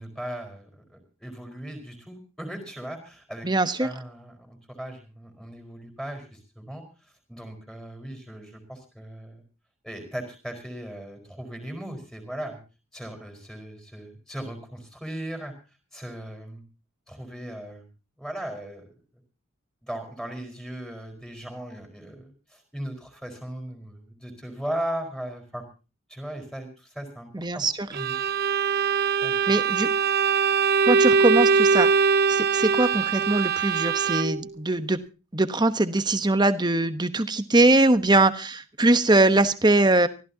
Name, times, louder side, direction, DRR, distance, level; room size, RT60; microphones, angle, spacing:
voice 1, 0.0-3.5 3.8-9.4 9.8-12.6 12.9-15.5 15.9-16.6 17.1-17.9 18.2-18.9 19.8-25.6 26.1-27.6 27.9-28.2 29.2-29.4, right 1 dB, 5° left, 5 dB, 4.8 m, -37 dB
voice 2, 3.4-3.9 27.3-27.7 29.5-29.9 30.9-31.9 32.3-35.0 35.3-40.1, right 2 dB, 20° right, 10 dB, 1.1 m, -21 dB
Bowed string instrument, 27.9-34.5, right 5 dB, 45° right, 0.6 m, -22 dB
24.5 x 15.0 x 2.9 m, 0.33 s
head